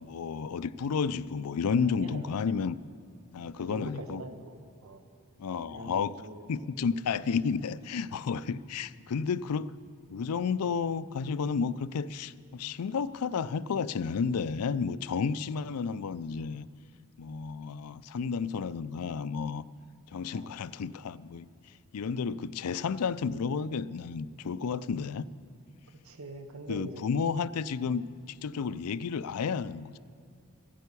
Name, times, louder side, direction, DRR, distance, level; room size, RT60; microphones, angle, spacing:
voice 1, 0.0-2.8 3.3-4.2 5.4-6.1 6.5-9.7 10.1-16.7 17.2-19.6 20.1-21.5 21.9-25.2 26.7-30.0, left 5 dB, 85° left, 16 dB, 0.4 m, -32 dB
voice 2, 1.8-2.3 3.6-5.0 5.7-6.4 20.3-20.5 26.0-27.1, right 2 dB, 70° right, 7 dB, 1.0 m, -43 dB
14.0 x 9.0 x 8.3 m, 2.5 s
head